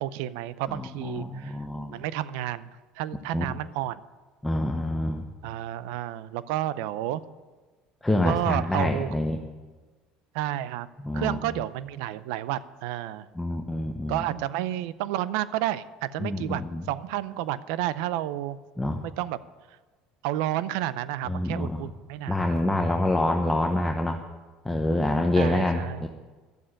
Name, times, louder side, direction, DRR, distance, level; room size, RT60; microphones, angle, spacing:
voice 1, 0.0-1.6 1.9-2.7 3.0-4.0 5.4-7.2 8.2-9.1 10.3-10.9 11.1-13.3 14.1-16.6 16.9-18.6 19.2-19.4 20.2-23.0 25.4-26.0, right 13 dB, 80° right, 17 dB, 0.6 m, -31 dB
voice 2, 0.7-2.0 3.3-3.4 4.4-5.2 8.0-9.4 11.0-11.5 13.3-14.2 16.2-16.8 18.8-19.0 21.3-21.9 22.3-24.2 24.6-26.1, left 1 dB, 10° left, 3 dB, 1.0 m, -26 dB
12.0 x 7.6 x 8.6 m, 1.3 s
supercardioid pair, 100°, 3 cm